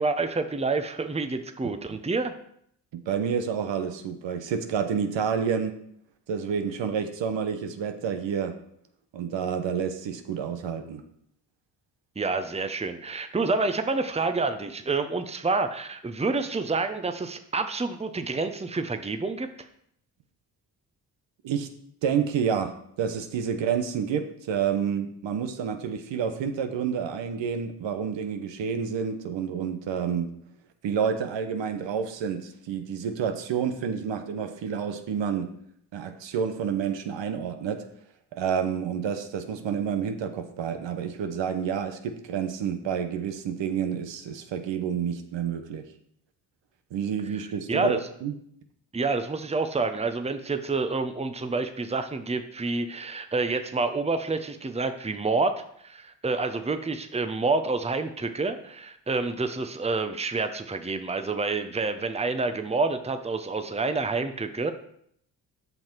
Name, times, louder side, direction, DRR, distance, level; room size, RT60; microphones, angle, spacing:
voice 1, 0.0-2.3 12.2-19.5 47.7-48.0 48.9-64.7, right 3 dB, 15° right, 8 dB, 0.9 m, -28 dB
voice 2, 2.9-5.8 6.3-8.6 9.1-11.0 21.4-21.7 22.0-30.3 30.8-35.5 35.9-37.9 38.3-45.9 46.9-48.3, right 7 dB, 70° right, 7 dB, 1.0 m, -29 dB
7.9 x 5.7 x 4.6 m, 0.68 s
hypercardioid pair, 45°, 47 cm